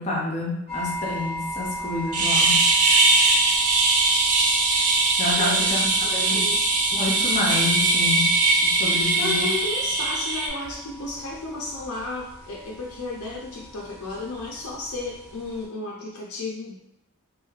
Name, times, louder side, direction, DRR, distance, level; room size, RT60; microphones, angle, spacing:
voice 1, 0.0-2.6 5.2-6.5 6.9-8.3 8.6-9.5, left 2 dB, 30° left, -3 dB, 0.5 m, -28 dB
sound 1, 0.7-15.6, equal, 45° right, 1.0 m, -38 dB
sound 2, 2.1-10.5, right 3 dB, 90° right, 0.6 m, -21 dB
voice 2, 5.4-6.6 9.2-16.7, left 2 dB, 80° left, -3 dB, 0.5 m, -33 dB
3.1 x 2.6 x 2.3 m, 0.80 s
head